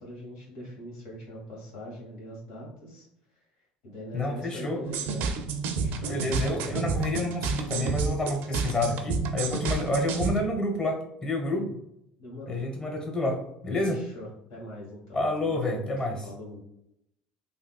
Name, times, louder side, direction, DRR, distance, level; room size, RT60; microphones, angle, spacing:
voice 1, 0.0-3.4 3.8-5.3 5.8-6.2 11.5-11.6 12.2-12.6 13.8-16.6, equal, 80° left, -3 dB, 1.4 m, -42 dB
voice 2, 4.1-4.8 6.1-11.7 12.5-14.0 15.1-16.3, left 2 dB, 25° left, 1 dB, 1.1 m, -29 dB
sound 1, 4.8-10.4, right 4 dB, 65° right, 0.4 m, -30 dB
3.5 x 2.5 x 2.3 m, 0.77 s
supercardioid pair, 80°, 3 cm